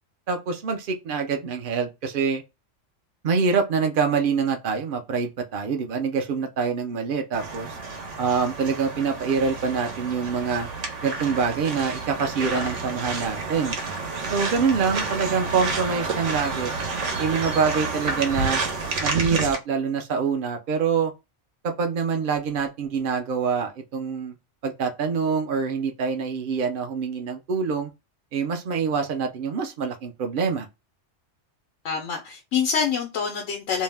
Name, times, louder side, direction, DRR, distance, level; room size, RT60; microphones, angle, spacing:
voice 1, 0.3-2.4 3.2-7.8 8.2-10.7 11.0-13.8 14.3-16.7 17.2-18.6 19.0-21.1 21.6-24.3 24.6-27.9 28.3-30.7, right 5 dB, 60° right, 0.6 m, -25 dB
sound 1, 7.3-19.6, right 4 dB, 85° right, 1.1 m, -30 dB
voice 2, 12.5-12.9 31.8-33.8, left 6 dB, 90° left, 0.9 m, -26 dB
2.7 x 2.1 x 3.2 m
omnidirectional pair, 1.2 m